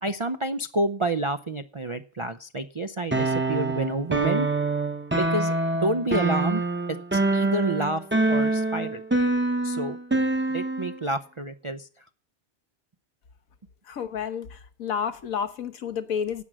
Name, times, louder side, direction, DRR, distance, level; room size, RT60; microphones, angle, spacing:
voice 1, 0.0-4.5 5.2-9.0 9.6-10.0 10.5-11.9, right 2 dB, 45° right, 0.4 m, -29 dB
sound 1, 3.1-11.0, right 2 dB, 10° right, 0.8 m, -25 dB
voice 2, 13.8-16.4, left 7 dB, 75° left, 1.4 m, -30 dB
16.5 x 6.2 x 7.5 m
omnidirectional pair, 1.5 m